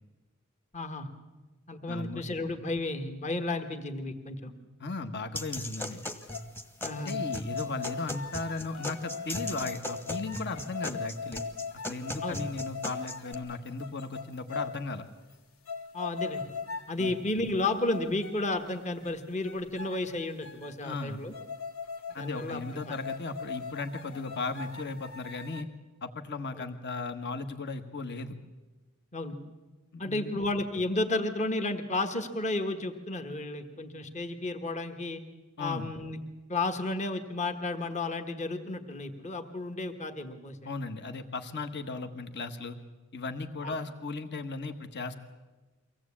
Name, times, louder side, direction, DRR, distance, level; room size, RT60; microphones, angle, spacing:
voice 1, 0.7-1.1 1.7-4.5 6.8-7.2 12.2-12.4 15.9-16.4 16.9-21.3 22.2-22.6 22.9-23.0 26.6-26.7 29.1-29.3 30.0-35.2 35.6-36.2 36.5-40.6 43.6-43.7, left 2 dB, 35° left, 6 dB, 1.5 m, -32 dB
voice 2, 1.9-2.2 4.8-6.0 7.0-11.4 11.9-15.0 17.0-17.1 20.8-21.2 22.1-25.7 26.0-28.3 29.9-30.4 35.6-35.9 40.6-42.8 43.1-45.2, left 3 dB, 50° left, 8 dB, 1.4 m, -36 dB
sound 1, 5.3-13.3, left 1 dB, 10° left, 1.2 m, -39 dB
sound 2, 6.0-6.5 6.8-14.9 15.3-15.4 15.7-17.3 17.6-18.4 18.7-19.1 19.4-20.7 21.3-25.6, left 5 dB, 65° left, 1.7 m, -40 dB
24.0 x 17.0 x 8.6 m, 1.2 s
head